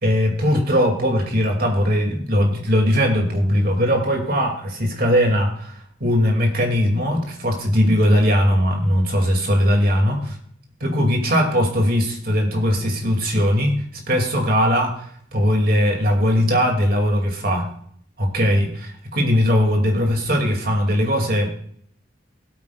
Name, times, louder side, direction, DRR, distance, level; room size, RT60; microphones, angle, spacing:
voice 1, 0.0-10.4 10.8-13.8 14.1-15.1 15.3-17.7 18.2-21.5, equal, 50° right, 1 dB, 2.5 m, -19 dB
18.5 x 8.8 x 2.4 m, 0.62 s
head